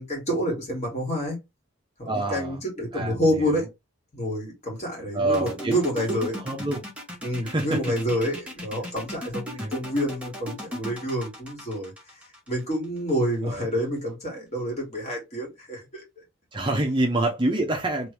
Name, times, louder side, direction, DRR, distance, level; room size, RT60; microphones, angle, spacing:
voice 1, 0.0-1.4 2.0-3.7 4.1-6.4 7.2-11.9 12.5-16.0, equal, 30° left, 2.1 m, -28 dB
voice 2, 2.0-2.6 2.9-3.6 5.1-5.7 6.1-6.2 6.4-6.8 7.4-7.8 9.6-9.7 13.4-13.7 16.5-18.1, right 2 dB, 20° right, 0.6 m, -26 dB
sound 1, 5.3-13.1, equal, 5° right, 1.1 m, -37 dB
3.2 x 3.0 x 3.2 m
head